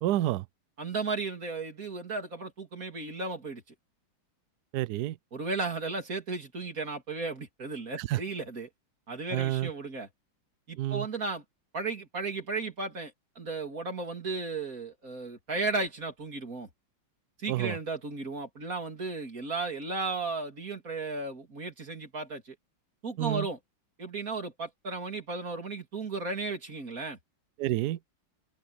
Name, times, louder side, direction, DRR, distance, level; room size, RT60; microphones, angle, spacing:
voice 1, 0.0-0.4 4.7-5.2 8.0-8.2 9.3-9.7 10.8-11.1 17.5-17.8 23.2-23.5 27.6-28.0, right 15 dB, 85° right, 0.8 m, -29 dB
voice 2, 0.8-3.6 5.3-8.7 9.1-10.1 10.7-11.4 11.7-16.7 17.4-22.6 23.0-23.6 24.0-27.2, right 3 dB, 40° right, 3.7 m, -35 dB
open air
omnidirectional pair, 2.3 m